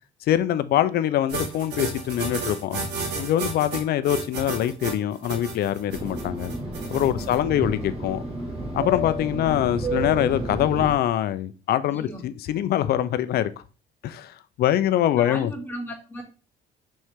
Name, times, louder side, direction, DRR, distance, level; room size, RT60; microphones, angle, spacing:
voice 1, 0.2-2.9 3.2-6.5 6.9-8.2 8.7-13.6 14.0-15.5, left 11 dB, 65° left, 0.7 m, -24 dB
sound 1, 1.3-7.4, right 3 dB, 90° right, 2.2 m, -32 dB
Fixed-wing aircraft airplane, 5.9-10.9, right 1 dB, 35° right, 1.8 m, -31 dB
voice 2, 11.9-12.2 15.2-16.2, equal, 10° left, 2.6 m, -36 dB
6.3 x 4.5 x 3.7 m
cardioid pair, 110°, 17 cm